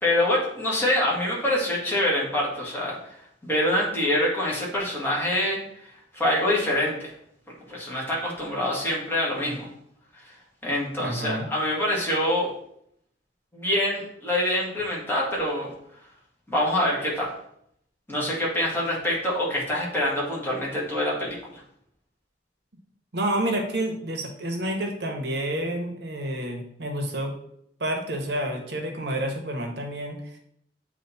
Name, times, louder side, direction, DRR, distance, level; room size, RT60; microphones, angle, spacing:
voice 1, 0.0-3.1 3.4-7.1 7.7-9.7 10.6-12.5 13.5-15.7 16.5-17.3 18.1-21.6, left 1 dB, 15° left, -5 dB, 1.9 m, -25 dB
voice 2, 11.0-11.5 23.1-27.3 27.8-30.4, right 1 dB, 70° right, 3 dB, 1.2 m, -29 dB
8.0 x 3.0 x 4.2 m, 0.72 s
head